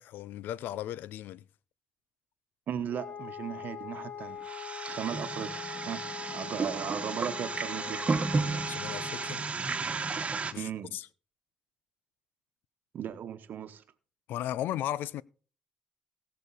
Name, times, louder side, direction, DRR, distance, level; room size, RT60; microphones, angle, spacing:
voice 1, 0.0-1.4 8.7-9.4 10.5-11.1 14.3-15.2, left 12 dB, 85° left, 0.4 m, -36 dB
voice 2, 2.7-4.4 4.9-8.1 10.6-11.0 12.9-13.8, right 9 dB, 70° right, 1.0 m, -37 dB
Wind instrument woodwind instrument, 2.9-9.5, left 8 dB, 60° left, 1.9 m, -42 dB
sound 1, 4.4-10.5, right 4 dB, 40° right, 1.3 m, -33 dB
17.5 x 6.6 x 4.1 m
cardioid pair, 65°, 3 cm